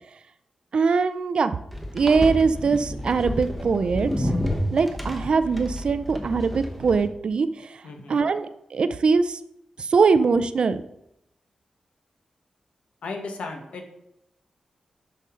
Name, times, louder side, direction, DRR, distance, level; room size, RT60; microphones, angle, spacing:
voice 1, 0.7-1.6 1.9-4.3 4.7-7.5 8.1-9.4 9.9-10.8, right 4 dB, 50° right, 12 dB, 0.4 m, -22 dB
sound 1, 1.7-7.1, equal, 5° left, 0.9 m, -30 dB
voice 2, 7.8-8.2 13.0-13.9, left 3 dB, 75° left, 4 dB, 1.3 m, -35 dB
10.5 x 5.3 x 3.7 m, 0.81 s
wide cardioid pair, 165°, 2 cm